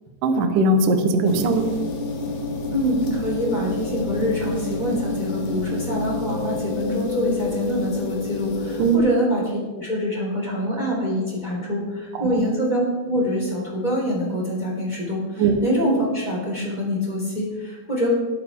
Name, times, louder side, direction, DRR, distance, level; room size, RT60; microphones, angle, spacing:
voice 1, 0.2-1.6 8.8-9.0 12.1-12.5 15.4-15.6, right 2 dB, 70° right, 6 dB, 2.0 m, -20 dB
sound 1, 1.2-9.0, left 3 dB, 60° left, 2.8 m, -29 dB
voice 2, 2.7-18.1, equal, 10° left, -4 dB, 3.2 m, -25 dB
20.5 x 8.6 x 3.7 m, 1.3 s
omnidirectional pair, 5.5 m